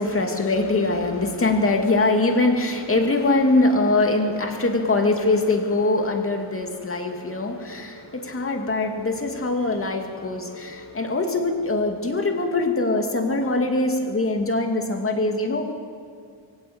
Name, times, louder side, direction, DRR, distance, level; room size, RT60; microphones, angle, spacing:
voice 1, 0.0-15.7, left 2 dB, 30° left, 4 dB, 2.4 m, -23 dB
24.0 x 16.0 x 8.7 m, 2.3 s
wide cardioid pair, 165°, 45 cm